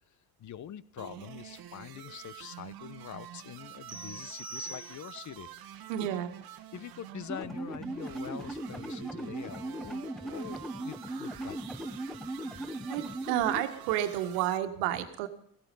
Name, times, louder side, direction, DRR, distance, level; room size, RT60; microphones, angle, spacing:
voice 1, 0.4-6.1 6.7-11.6, left 10 dB, 40° left, 17 dB, 1.0 m, -45 dB
sound 1, 1.0-14.6, right 11 dB, 55° right, 1.3 m, -48 dB
sound 2, 3.9-5.4, right 2 dB, 20° right, 2.1 m, -43 dB
voice 2, 5.9-6.3 12.9-15.3, right 12 dB, 70° right, 8 dB, 1.8 m, -30 dB
sound 3, 7.3-13.6, right 1 dB, ahead, 1.3 m, -38 dB
17.0 x 15.5 x 5.4 m, 0.65 s
hypercardioid pair, 60°, 44 cm